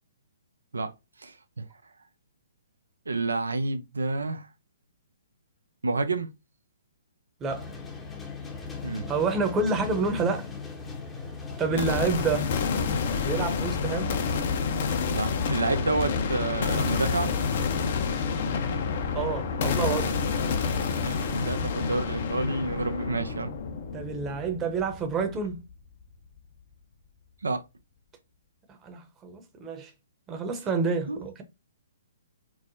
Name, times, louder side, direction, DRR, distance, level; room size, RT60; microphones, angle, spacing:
voice 1, 1.2-1.6 3.1-4.5 5.8-6.3 8.8-9.1 11.7-11.9 15.1-17.3 21.0-23.5 27.4-27.6 31.1-31.2, right 3 dB, 90° right, 0.5 m, -29 dB
sound 1, 7.5-12.6, left 5 dB, 15° left, 0.7 m, -38 dB
voice 2, 8.9-10.5 11.6-12.5 13.2-14.2 19.1-20.2 23.9-25.6 28.7-29.9 30.3-31.4, right 4 dB, 20° right, 0.8 m, -28 dB
sound 2, 11.8-25.7, left 5 dB, 55° left, 0.7 m, -29 dB
4.6 x 2.1 x 2.6 m
hypercardioid pair, 135°, 0 cm